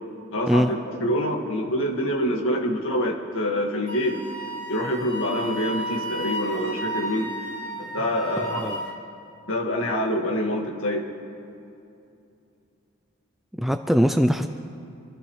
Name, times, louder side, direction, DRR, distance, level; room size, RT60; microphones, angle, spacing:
voice 1, 0.3-4.2 4.7-7.3 7.8-8.8 9.5-11.0, equal, 65° left, 0 dB, 1.9 m, -26 dB
Wind instrument woodwind instrument, 3.9-9.0, right 1 dB, 35° left, 1.9 m, -33 dB
voice 2, 13.6-14.5, equal, ahead, 7 dB, 0.3 m, -21 dB
27.0 x 14.0 x 3.3 m, 2.6 s
head